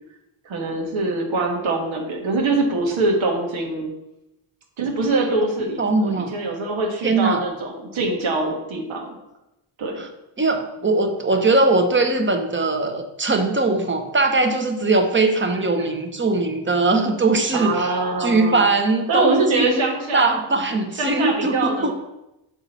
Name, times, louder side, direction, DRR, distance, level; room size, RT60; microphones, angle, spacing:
voice 1, 0.4-3.9 4.8-9.2 9.8-10.0 15.8-15.9 17.5-18.7 19.1-20.4 21.0-21.9, right 3 dB, 85° right, 0 dB, 1.5 m, -23 dB
voice 2, 5.8-6.3 7.0-7.4 10.0-10.1 10.4-19.8 20.1-21.9, right 3 dB, 25° right, 5 dB, 0.9 m, -20 dB
7.3 x 3.7 x 4.1 m, 0.92 s
cardioid pair, 65°, 46 cm